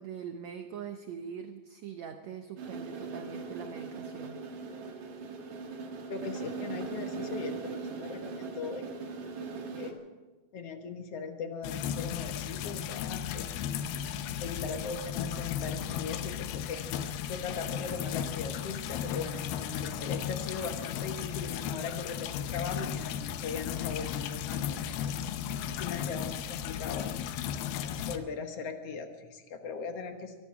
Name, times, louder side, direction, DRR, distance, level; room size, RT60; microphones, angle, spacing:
voice 1, 0.0-4.4, right 7 dB, 80° right, 6 dB, 1.5 m, -42 dB
sound 1, 2.6-9.9, right 4 dB, 55° right, 2.7 m, -39 dB
voice 2, 6.1-8.8 9.8-9.9 10.5-13.6 14.4-16.8 17.3-25.1 25.8-27.1 28.1-30.4, left 5 dB, 60° left, 6 dB, 1.7 m, -39 dB
sound 2, 11.6-28.2, left 9 dB, 85° left, 2.7 m, -35 dB
24.0 x 12.5 x 4.9 m, 1.2 s
omnidirectional pair, 4.3 m